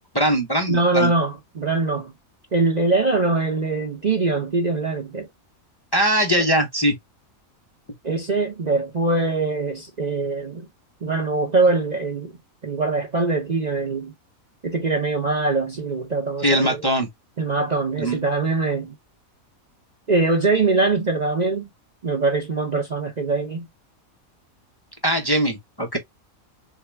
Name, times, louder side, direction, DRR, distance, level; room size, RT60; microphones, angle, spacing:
voice 1, 0.1-1.1 5.9-7.0 16.4-17.1 18.0-18.2 25.0-26.0, right 1 dB, 20° left, 0.8 m, -21 dB
voice 2, 0.7-2.1 2.5-5.3 8.0-10.7 11.0-12.3 12.6-14.1 14.6-16.8 17.4-18.9 20.1-21.7 22.0-23.7, right 3 dB, 35° right, 0.8 m, -22 dB
3.6 x 2.7 x 3.3 m
omnidirectional pair, 1.4 m